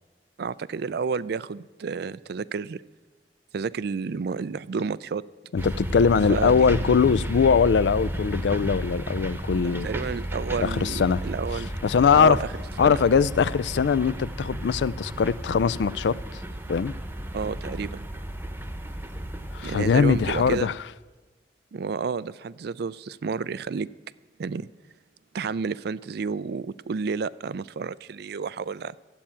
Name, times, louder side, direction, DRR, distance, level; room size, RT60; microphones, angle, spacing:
voice 1, 0.4-2.8 3.5-5.2 6.3-6.8 9.5-11.7 12.1-12.5 12.8-13.0 17.3-18.1 19.6-20.7 21.7-23.9 24.4-24.7 25.3-29.0, right 5 dB, 65° right, 0.4 m, -31 dB
voice 2, 5.5-9.9 10.6-11.2 11.8-12.4 12.8-16.2 16.7-16.9 19.5-20.7, left 6 dB, 75° left, 0.4 m, -21 dB
sound 1, 5.6-20.6, equal, 10° right, 0.9 m, -33 dB
12.5 x 8.4 x 8.7 m
head